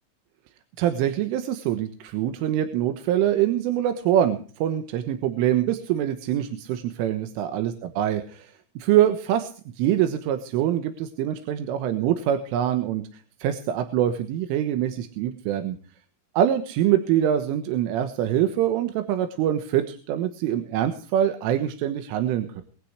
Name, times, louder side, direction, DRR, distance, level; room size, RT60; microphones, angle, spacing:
voice 1, 0.8-8.5 8.8-15.8 16.4-22.6, right 11 dB, 90° right, 8 dB, 3.7 m, -24 dB
22.5 x 10.0 x 4.8 m, 0.42 s
omnidirectional pair, 5.6 m